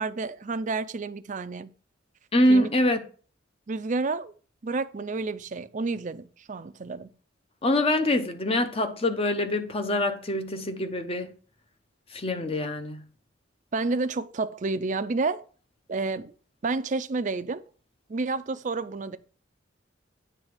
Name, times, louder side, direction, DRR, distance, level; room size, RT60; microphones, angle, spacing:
voice 1, 0.0-1.7 2.5-2.7 3.7-4.3 4.6-7.1 13.7-15.4 15.9-16.3 16.6-17.6 18.1-19.2, right 3 dB, 40° right, 0.5 m, -30 dB
voice 2, 2.3-3.0 7.6-11.3 12.1-13.0, left 1 dB, 30° left, 0.8 m, -24 dB
8.8 x 3.5 x 6.5 m
head